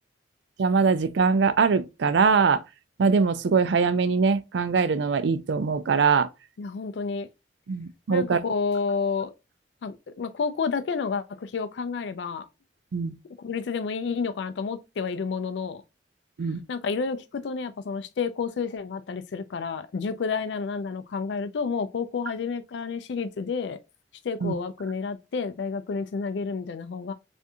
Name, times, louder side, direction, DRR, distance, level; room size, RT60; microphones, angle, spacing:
voice 1, 0.6-2.6 3.0-6.3 7.7-8.4 12.9-13.1 16.4-16.6 24.4-24.5, right 5 dB, 70° right, 0.4 m, -22 dB
voice 2, 6.6-7.3 8.1-9.3 9.8-12.5 13.4-15.8 16.7-23.8 24.2-27.1, left 5 dB, 70° left, 0.4 m, -30 dB
3.5 x 2.6 x 2.6 m
head